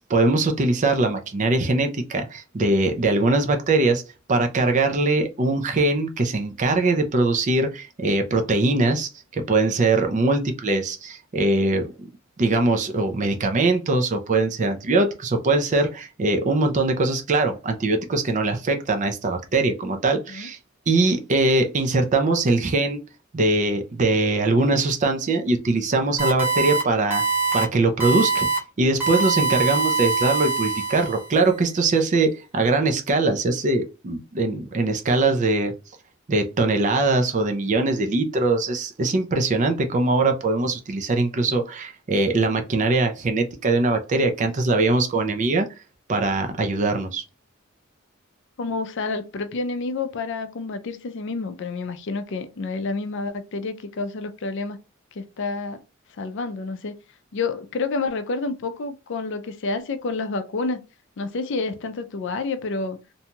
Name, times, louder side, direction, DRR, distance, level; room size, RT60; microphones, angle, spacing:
voice 1, 0.1-4.0 4.3-12.1 12.4-20.6 20.9-23.0 23.3-27.2 27.5-28.5 28.8-35.7 36.3-45.7 46.1-47.2, right 2 dB, 40° right, 0.5 m, -22 dB
sound 1, 26.2-26.8 27.1-27.6 28.0-28.6 29.0-31.3, right 4 dB, 10° right, 0.8 m, -23 dB
voice 2, 48.6-54.8 55.2-55.8 56.2-56.9 57.3-60.8 61.2-63.0, left 3 dB, 60° left, 0.5 m, -29 dB
2.6 x 2.2 x 2.8 m
head